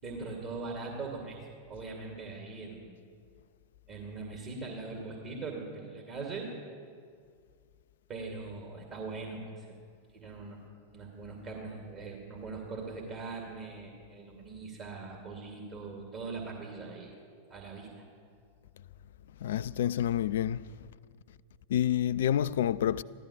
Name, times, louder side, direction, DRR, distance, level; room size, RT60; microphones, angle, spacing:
voice 1, 0.0-2.9 3.9-6.5 8.1-9.7 10.1-10.6 10.9-17.1 17.5-18.0, right 3 dB, 35° right, 2.4 m, -41 dB
voice 2, 19.4-20.6 21.7-23.0, left 10 dB, 60° left, 0.4 m, -28 dB
15.5 x 12.5 x 7.0 m
figure-of-eight pair, 90°, 0 cm